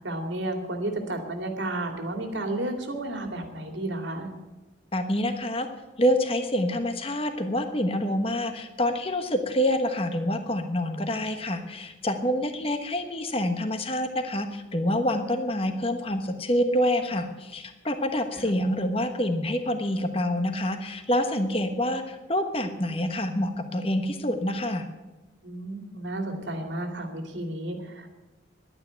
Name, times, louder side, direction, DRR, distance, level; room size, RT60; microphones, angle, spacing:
voice 1, 0.0-4.3 18.3-18.5 25.4-28.1, right 1 dB, 75° right, 4 dB, 2.5 m, -32 dB
voice 2, 4.9-5.7 6.0-24.9, left 1 dB, 30° left, 7 dB, 1.2 m, -27 dB
11.5 x 9.6 x 9.3 m, 1.1 s
head